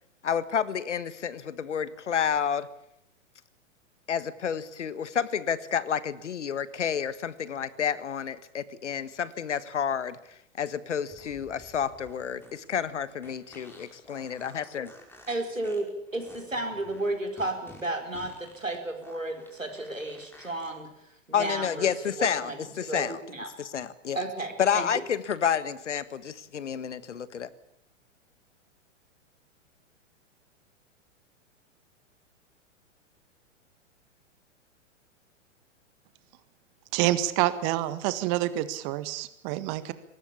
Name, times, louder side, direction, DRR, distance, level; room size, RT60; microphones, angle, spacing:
voice 1, 0.2-2.7 4.1-10.2 10.6-14.9 21.3-22.5 22.8-23.2 23.7-24.2 24.6-27.5, left 8 dB, 65° left, 17 dB, 1.6 m, -30 dB
sound 1, 11.1-20.7, left 1 dB, 5° left, 5.2 m, -52 dB
voice 2, 15.3-23.5 24.1-25.0, right 2 dB, 85° right, 5 dB, 4.5 m, -33 dB
voice 3, 36.9-39.9, right 14 dB, 35° right, 14 dB, 1.7 m, -27 dB
22.5 x 19.0 x 8.7 m, 0.75 s
figure-of-eight pair, 105°, 38 cm